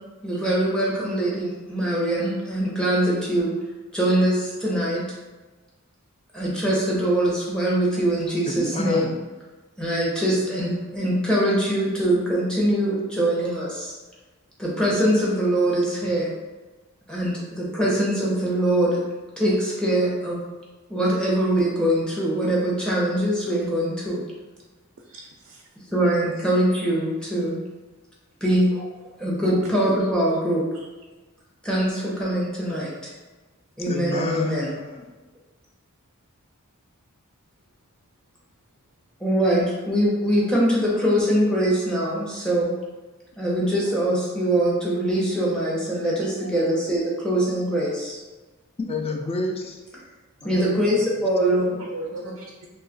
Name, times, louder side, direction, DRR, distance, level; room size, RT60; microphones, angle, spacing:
voice 1, 0.2-3.5 3.9-5.0 6.3-9.2 9.8-13.9 14.6-16.3 17.1-19.0 19.4-20.4 20.9-24.2 25.9-27.6 28.4-28.7 29.2-30.6 31.6-33.1 33.8-34.7 39.2-42.7 43.4-48.2 50.4-51.8, right 1 dB, 5° left, -6 dB, 0.7 m, -23 dB
voice 2, 8.4-9.1 33.9-35.1 48.8-49.8 50.4-50.8, left 2 dB, 25° left, 3 dB, 0.3 m, -30 dB
voice 3, 25.1-25.6 28.7-29.5 30.7-30.9 51.4-51.5 51.9-52.1 52.4-52.7, right 1 dB, 60° right, 0 dB, 0.4 m, -39 dB
2.8 x 2.3 x 3.8 m, 1.2 s
head